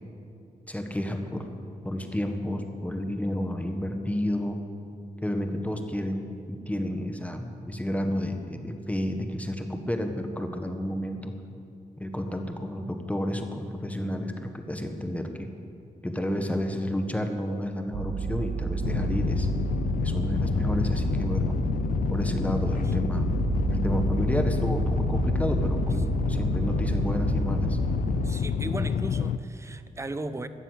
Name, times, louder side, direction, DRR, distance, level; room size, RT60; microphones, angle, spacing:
voice 1, 0.7-1.5 1.8-4.6 5.2-11.3 12.0-15.5 16.0-19.5 20.0-21.6 22.1-23.3 23.7-27.8, left 1 dB, 10° left, 5 dB, 1.5 m, -31 dB
sound 1, 17.9-28.3, right 5 dB, 65° right, 0.6 m, -30 dB
sound 2, 18.8-29.4, left 7 dB, 75° left, 0.6 m, -28 dB
voice 2, 28.2-30.5, right 2 dB, 20° right, 11 dB, 0.9 m, -36 dB
14.5 x 9.8 x 8.4 m, 2.8 s
cardioid pair, 90°, 15 cm